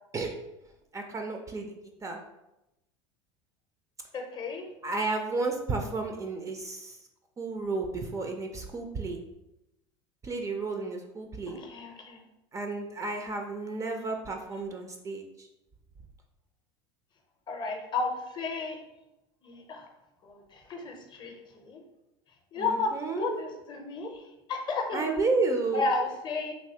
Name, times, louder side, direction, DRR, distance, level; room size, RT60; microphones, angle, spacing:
voice 1, 0.9-1.7 2.0-2.2 4.8-7.0 7.4-9.2 10.2-11.6 12.5-15.5 22.6-23.4 24.9-25.8, right 3 dB, 25° right, 4 dB, 0.4 m, -32 dB
voice 2, 4.1-4.7 11.5-12.2 17.5-18.8 19.4-19.9 20.2-21.8 22.5-22.9 23.2-24.2 24.5-25.0 25.7-26.5, left 3 dB, 30° left, 4 dB, 0.6 m, -33 dB
3.2 x 2.8 x 2.8 m, 0.92 s
supercardioid pair, 105°, 14 cm